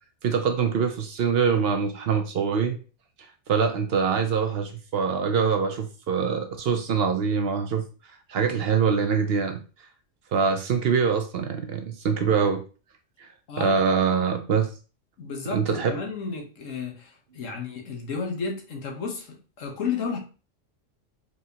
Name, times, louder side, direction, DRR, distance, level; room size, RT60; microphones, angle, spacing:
voice 1, 0.2-2.8 3.5-7.9 8.3-9.6 10.3-12.6 13.2-13.3 13.6-14.7 15.5-15.9, right 6 dB, 60° right, 0.7 m, -24 dB
voice 2, 13.5-13.8 15.2-20.2, left 5 dB, 80° left, 1.4 m, -32 dB
4.5 x 3.3 x 2.8 m
omnidirectional pair, 1.3 m